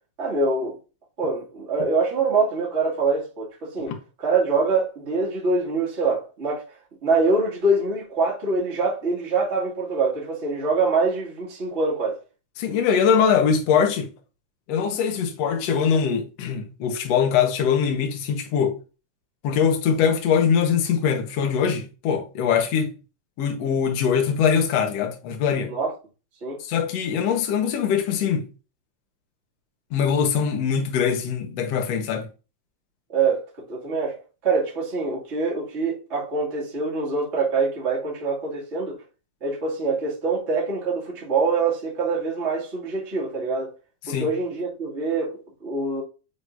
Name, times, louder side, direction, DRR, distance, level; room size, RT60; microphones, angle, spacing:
voice 1, 0.2-0.8 1.2-6.6 7.0-12.2 25.7-25.9 26.4-26.6 33.1-34.2 34.4-39.0 39.4-43.7 44.1-46.0, right 3 dB, 25° right, 2.1 m, -24 dB
voice 2, 12.6-14.1 14.7-18.8 19.4-22.9 23.4-25.7 26.6-28.5 29.9-32.3 44.1-44.3, left 7 dB, 60° left, 2.2 m, -22 dB
9.6 x 4.0 x 2.6 m
omnidirectional pair, 3.6 m